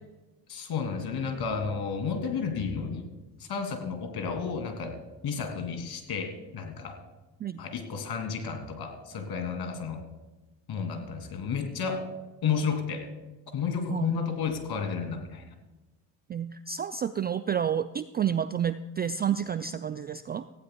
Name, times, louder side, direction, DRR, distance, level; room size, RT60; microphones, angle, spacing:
voice 1, 0.5-3.0 3.4-5.0 5.2-7.0 7.6-10.0 10.7-12.1 12.4-13.1 13.5-15.4, left 6 dB, 50° left, 6 dB, 2.7 m, -32 dB
voice 2, 16.3-20.4, right 8 dB, 25° right, 12 dB, 0.3 m, -30 dB
18.5 x 15.0 x 2.3 m, 1.1 s
hypercardioid pair, 65°, 47 cm